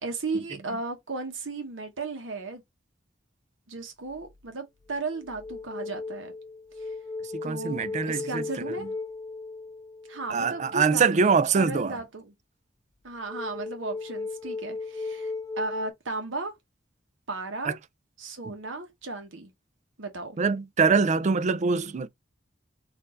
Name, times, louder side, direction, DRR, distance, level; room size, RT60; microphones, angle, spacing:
voice 1, 0.0-2.6 3.7-6.3 6.8-6.9 7.4-8.9 10.1-12.3 13.0-16.5 17.3-17.8 18.2-19.5 20.0-20.4, right 3 dB, 90° right, 1.0 m, -35 dB
sound 1, 4.1-4.4 4.9-10.8 13.3-15.9, left 3 dB, 20° left, 0.5 m, -37 dB
voice 2, 7.3-8.4 10.3-12.0 17.6-17.7 18.4-18.5 20.4-22.1, right 5 dB, 40° right, 0.4 m, -24 dB
4.4 x 2.6 x 3.7 m
head